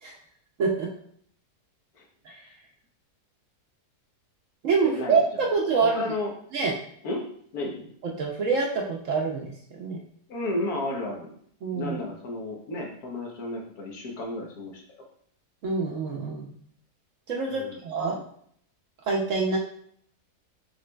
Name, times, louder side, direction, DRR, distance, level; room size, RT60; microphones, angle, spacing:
voice 1, 0.6-0.9 2.3-2.4 4.6-6.0 6.5-6.7 8.0-10.0 11.6-12.0 15.6-16.5 17.3-18.2 19.1-19.6, right 4 dB, 60° right, 0 dB, 0.9 m, -26 dB
voice 2, 4.8-6.3 7.0-7.3 7.5-7.9 10.3-11.3 11.7-14.8 17.5-17.8, left 1 dB, 70° left, 0 dB, 1.4 m, -33 dB
6.2 x 3.2 x 2.2 m, 0.64 s
omnidirectional pair, 1.7 m